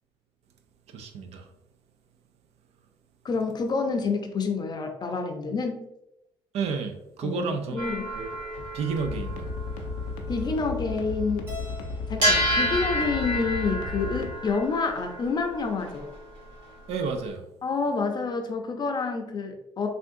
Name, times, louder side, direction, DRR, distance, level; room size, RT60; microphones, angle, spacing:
voice 1, 0.9-1.5 6.5-8.3 8.6-9.5 16.9-17.5, right 5 dB, 65° right, 6 dB, 0.5 m, -31 dB
voice 2, 3.2-5.9 7.2-8.1 10.3-11.5 12.1-16.1 17.6-19.9, left 4 dB, 35° left, 4 dB, 0.6 m, -28 dB
sound 1, 7.8-11.2 11.5-11.7 12.1-17.3, equal, 85° right, 1.4 m, -30 dB
sound 2, 9.0-14.3, left 3 dB, 85° left, 0.5 m, -34 dB
Keyboard (musical), 11.5-13.8, left 4 dB, 20° right, 0.9 m, -46 dB
3.5 x 2.4 x 2.7 m, 0.84 s
supercardioid pair, 80°, 12 cm